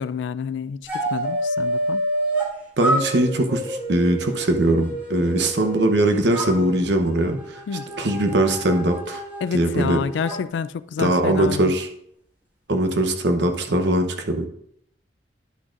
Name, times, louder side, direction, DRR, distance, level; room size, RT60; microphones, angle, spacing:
voice 1, 0.0-2.0 7.7-7.9 9.4-11.7, left 6 dB, 80° left, 0.3 m, -28 dB
sound 1, 0.9-2.5 2.8-5.9 6.3-10.4, right 1 dB, 10° right, 1.7 m, -28 dB
voice 2, 2.8-7.6 8.0-9.2 9.5-10.0 11.0-11.9 12.7-14.5, right 1 dB, 70° right, 0.9 m, -21 dB
10.5 x 6.2 x 2.5 m
head